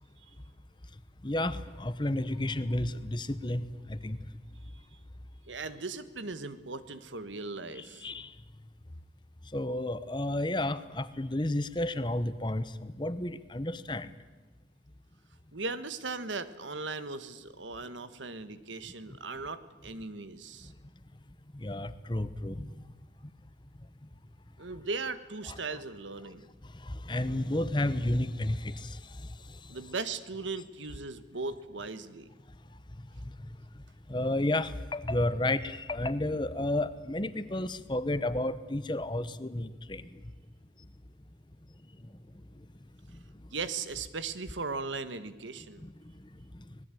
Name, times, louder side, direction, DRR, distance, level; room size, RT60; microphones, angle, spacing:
voice 1, 1.2-4.2 7.7-8.3 9.5-14.1 21.5-22.7 25.5-25.6 27.0-29.0 34.1-40.0 45.8-45.9, left 1 dB, 25° left, 14 dB, 1.0 m, -31 dB
voice 2, 5.5-8.0 15.5-20.7 24.6-26.5 29.7-32.3 43.5-45.8, right 3 dB, 85° right, 13 dB, 1.5 m, -38 dB
25.5 x 19.5 x 9.2 m, 1.2 s
head